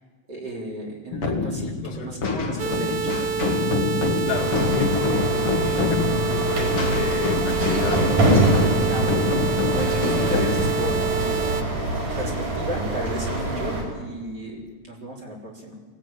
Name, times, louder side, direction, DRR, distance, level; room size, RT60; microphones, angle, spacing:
voice 1, 0.3-3.5 8.8-11.6 12.1-15.8, equal, 30° right, -2 dB, 4.6 m, -34 dB
sound 1, 1.1-12.5, left 4 dB, 50° left, 2.6 m, -26 dB
voice 2, 1.8-2.1 4.3-8.2, left 6 dB, 85° left, 2 dB, 3.6 m, -32 dB
sound 2, 2.6-11.6, right 7 dB, 65° right, 1.3 m, -27 dB
sound 3, 4.3-13.8, right 2 dB, 85° right, 6.6 m, -25 dB
23.0 x 17.0 x 9.1 m, 1.4 s
omnidirectional pair, 3.5 m